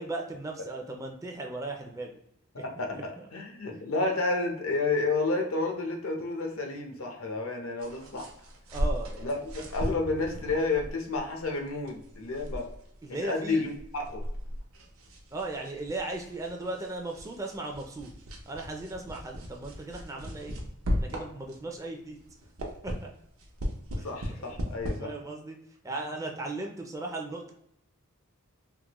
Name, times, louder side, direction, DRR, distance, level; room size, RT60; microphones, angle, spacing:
voice 1, 0.0-2.2 2.9-3.3 8.7-9.4 13.0-13.7 15.3-18.1 18.5-20.6 20.9-22.2 22.8-23.1 24.0-24.7 25.0-25.6 25.8-27.5, right 2 dB, 15° right, 2 dB, 0.4 m, -37 dB
voice 2, 2.8-8.3 9.2-12.7 13.2-14.3 24.0-25.1, left 3 dB, 75° left, 2 dB, 0.7 m, -30 dB
sound 1, 7.8-21.8 22.2-25.0, equal, 90° right, 0.7 m, -37 dB
3.5 x 2.1 x 2.9 m, 0.76 s
head